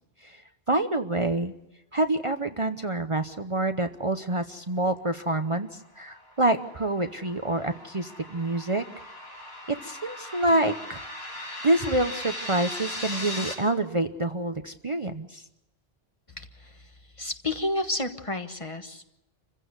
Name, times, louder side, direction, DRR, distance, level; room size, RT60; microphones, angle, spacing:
voice 1, 0.7-1.5 1.9-8.8 9.7-11.0 11.3-15.4, right 1 dB, 35° right, 8 dB, 0.9 m, -27 dB
sound 1, 5.8-13.5, left 1 dB, 75° left, 4.3 m, -39 dB
voice 2, 16.4-16.7 17.2-19.1, left 2 dB, 30° left, 7 dB, 1.4 m, -31 dB
27.5 x 15.5 x 8.0 m, 0.86 s
omnidirectional pair, 1.1 m